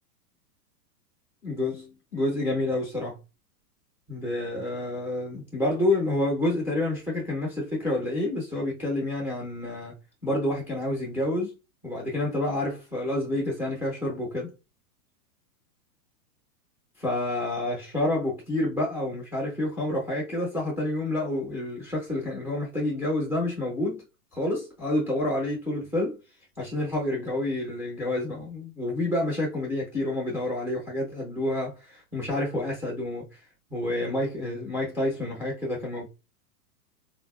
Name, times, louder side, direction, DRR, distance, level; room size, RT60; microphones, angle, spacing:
voice 1, 1.4-3.1 4.1-9.9 10.2-11.5 11.8-14.5 17.0-24.0 24.3-26.2 26.6-33.4 33.7-36.1, left 1 dB, 5° right, 0.4 m, -28 dB
4.1 x 2.4 x 2.2 m
hypercardioid pair, 150°, 48 cm